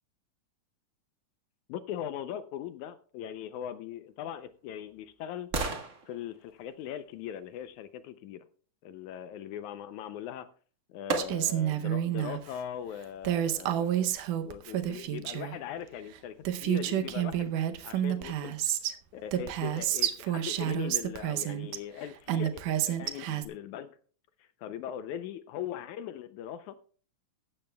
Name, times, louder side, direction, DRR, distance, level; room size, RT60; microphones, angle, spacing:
voice 1, 1.7-5.5 6.1-8.4 8.8-10.5 10.9-17.5 17.8-18.6 19.1-22.6 22.9-24.0 24.4-26.8, left 10 dB, 75° left, 1.9 m, -40 dB
sound 1, 4.0-8.1 10.2-10.3 11.1-11.8 12.3-12.4, right 4 dB, 60° right, 0.7 m, -38 dB
Female speech woman speaking, 11.2-12.4 13.2-15.6 16.2-16.3 16.4-18.9 19.3-21.8 22.3-23.5, right 11 dB, 80° right, 2.3 m, -30 dB
15.5 x 12.5 x 2.3 m
omnidirectional pair, 3.7 m